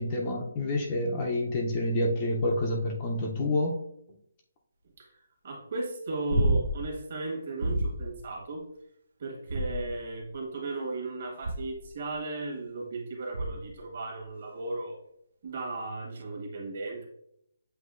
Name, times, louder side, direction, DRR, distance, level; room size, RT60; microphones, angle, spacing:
voice 1, 0.0-3.8, left 1 dB, 20° left, -1 dB, 0.5 m, -28 dB
voice 2, 5.0-8.7 9.2-15.0 15.4-17.0, right 2 dB, 40° right, -1 dB, 1.3 m, -36 dB
sound 1, 6.3-6.9 7.6-8.1 9.5-10.2 11.4-11.9 13.3-13.8 16.2-16.3, right 1 dB, 60° right, 0.4 m, -29 dB
7.7 x 2.6 x 2.4 m, 0.73 s
hypercardioid pair, 175°, 0 cm